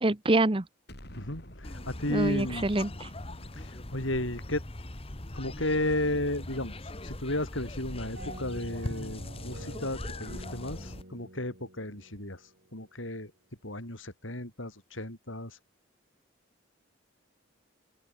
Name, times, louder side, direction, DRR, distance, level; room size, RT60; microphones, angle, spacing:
voice 1, 0.0-0.6 2.1-3.1, right 2 dB, 25° right, 1.0 m, -26 dB
Explosion, 0.9-6.1, equal, 55° left, 8.0 m, -50 dB
voice 2, 1.1-2.7 3.5-4.6 5.3-13.3 13.6-15.6, left 1 dB, 80° left, 7.7 m, -34 dB
sound 1, 1.6-11.0, left 1 dB, 30° left, 1.5 m, -41 dB
sound 2, 8.2-12.8, right 1 dB, 60° right, 4.8 m, -48 dB
open air
head